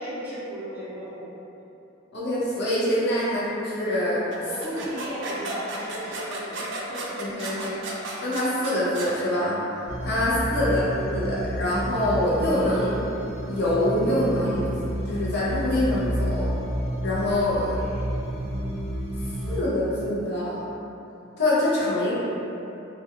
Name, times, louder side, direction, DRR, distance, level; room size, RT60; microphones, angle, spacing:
voice 1, 0.0-1.3 3.3-3.4 4.5-7.2 10.6-10.9 17.7-18.1, equal, 10° right, -12 dB, 0.7 m, -36 dB
voice 2, 2.1-4.2 7.2-7.8 8.2-9.6 10.0-13.0 13.5-14.7 15.1-16.5 17.0-17.8 19.5-20.6 21.4-22.1, left 1 dB, 60° left, -8 dB, 0.6 m, -25 dB
sound 1, 4.3-9.2, right 2 dB, 65° right, 0.4 m, -34 dB
sound 2, 9.9-19.6, equal, 80° left, 1.0 m, -30 dB
2.2 x 2.2 x 2.8 m, 2.9 s
head